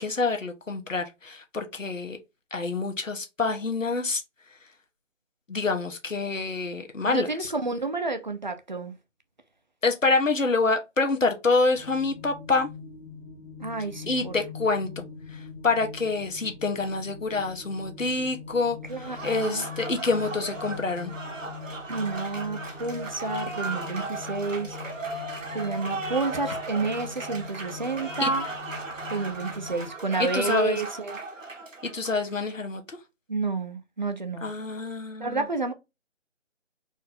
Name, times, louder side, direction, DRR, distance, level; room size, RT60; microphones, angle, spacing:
voice 1, 0.0-2.2 2.5-4.2 5.5-7.5 9.8-12.7 14.1-15.0 15.6-21.1 28.2-28.3 30.2-30.8 31.8-32.8 34.4-35.4, left 3 dB, 90° left, 1.2 m, -27 dB
voice 2, 7.1-8.9 13.6-14.4 18.9-19.6 21.9-24.8 25.5-28.4 29.1-31.2 33.3-34.5 35.2-35.7, right 3 dB, 40° right, 0.6 m, -30 dB
sound 1, 11.7-29.9, left 4 dB, 60° left, 1.7 m, -42 dB
Applause, 18.9-32.5, right 2 dB, 80° right, 1.4 m, -36 dB
4.4 x 2.7 x 3.7 m
figure-of-eight pair, 160°, 38 cm